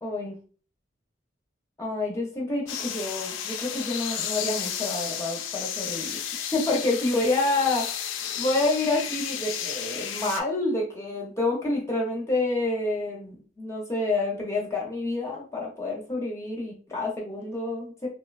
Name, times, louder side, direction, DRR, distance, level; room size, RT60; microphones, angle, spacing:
voice 1, 0.0-0.4 1.8-6.2 6.5-18.1, left 2 dB, 15° left, -2 dB, 0.5 m, -28 dB
sound 1, 2.7-10.4, left 9 dB, 90° left, 0.4 m, -33 dB
2.9 x 2.1 x 2.3 m, 0.39 s
head